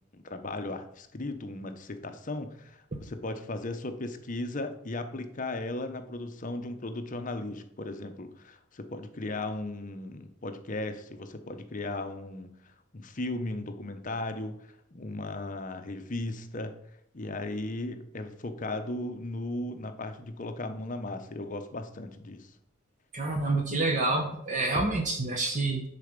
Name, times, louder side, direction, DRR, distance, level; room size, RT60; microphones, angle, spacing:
voice 1, 0.1-12.5 12.9-14.6 14.9-16.7 17.1-22.5, left 2 dB, 35° left, 8 dB, 0.7 m, -36 dB
voice 2, 23.1-25.8, right 2 dB, 35° right, 3 dB, 0.8 m, -28 dB
9.9 x 4.1 x 5.1 m, 0.77 s
head